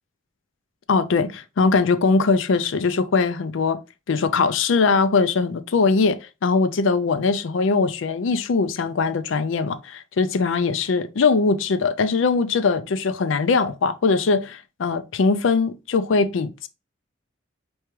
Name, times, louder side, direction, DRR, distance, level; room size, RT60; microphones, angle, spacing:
voice 1, 0.9-3.8 4.1-16.7, left 4 dB, 75° left, 0.5 m, -21 dB
4.5 x 3.5 x 3.1 m
head